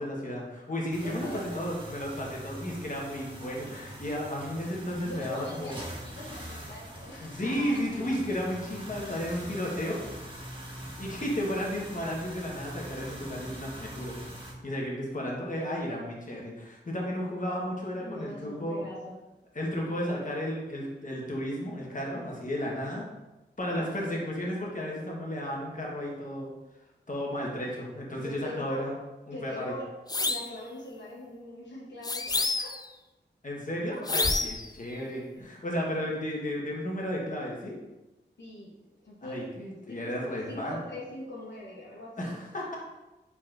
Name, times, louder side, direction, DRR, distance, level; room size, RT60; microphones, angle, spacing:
voice 1, 0.0-5.8 7.2-10.0 11.0-14.2 14.6-18.9 19.5-23.0 23.6-26.5 27.1-29.0 29.3-29.7 33.4-37.8 39.2-40.8 42.2-42.8, equal, 45° left, -3 dB, 1.2 m, -33 dB
sound 1, 0.9-14.5, right 1 dB, 25° right, 1.4 m, -43 dB
voice 2, 1.0-1.6 5.0-7.9 18.0-19.1 28.2-28.9 29.3-29.9 30.2-32.7 38.4-38.7 39.0-39.5 39.9-42.4, left 1 dB, 70° left, -5 dB, 1.0 m, -42 dB
sound 2, 30.1-30.6 32.0-32.9 34.1-34.7, left 3 dB, 20° left, 0.3 m, -28 dB
4.7 x 4.1 x 2.5 m, 1.0 s
cardioid pair, 50°, 19 cm